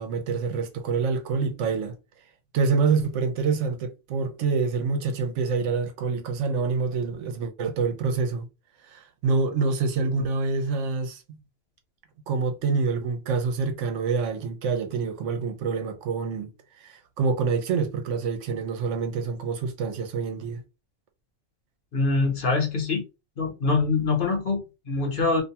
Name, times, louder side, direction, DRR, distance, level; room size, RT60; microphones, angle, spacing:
voice 1, 0.0-2.0 2.5-8.5 8.9-11.4 12.3-16.5 16.8-20.6, right 4 dB, 70° right, 0.9 m, -26 dB
voice 2, 21.9-23.0 23.4-25.4, left 3 dB, 45° left, 0.9 m, -24 dB
2.6 x 2.2 x 2.7 m
omnidirectional pair, 1.4 m